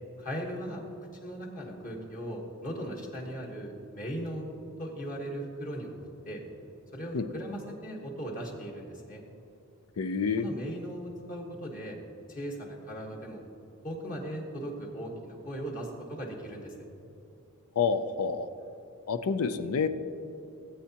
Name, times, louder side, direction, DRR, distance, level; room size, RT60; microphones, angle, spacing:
voice 1, 0.2-0.8 1.2-4.5 4.8-5.9 6.2-6.4 6.9-9.2 10.4-12.0 12.3-13.4 13.8-16.7, equal, 35° left, -2 dB, 1.4 m, -38 dB
voice 2, 10.0-10.5 17.8-18.5 19.1-19.9, left 5 dB, 70° left, 11 dB, 0.5 m, -28 dB
17.5 x 8.2 x 2.9 m, 2.8 s
head